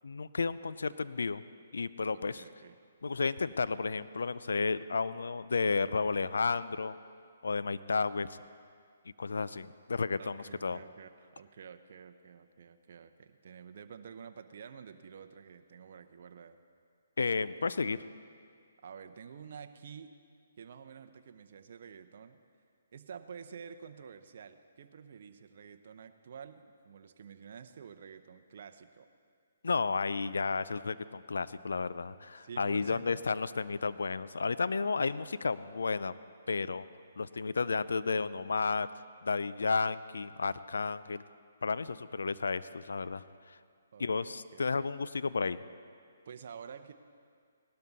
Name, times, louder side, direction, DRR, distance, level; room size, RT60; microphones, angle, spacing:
voice 1, 0.0-1.4 1.7-2.4 3.0-6.9 7.4-8.3 9.2-10.8 17.2-18.0 29.6-36.1 36.5-36.8 37.2-38.9 39.2-41.2 41.6-43.6 44.0-45.6, left 4 dB, 80° left, 15 dB, 0.5 m, -32 dB
voice 2, 2.1-2.8 10.2-16.6 18.8-20.2 20.6-22.4 22.9-29.1 32.4-33.2 34.9-35.1 43.9-44.9 46.3-46.9, right 7 dB, 55° right, 7 dB, 0.8 m, -49 dB
18.0 x 12.0 x 4.1 m, 2.2 s
hypercardioid pair, 145°, 0 cm